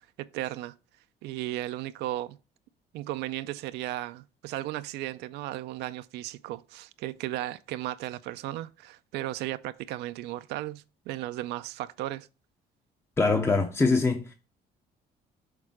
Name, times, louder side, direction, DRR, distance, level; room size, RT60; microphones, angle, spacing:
voice 1, 0.2-0.7 1.2-2.4 2.9-12.3, right 15 dB, 85° right, 0.4 m, -35 dB
voice 2, 13.2-14.3, left 3 dB, 15° left, 0.6 m, -23 dB
6.5 x 3.6 x 4.7 m
cardioid pair, 110°, 17 cm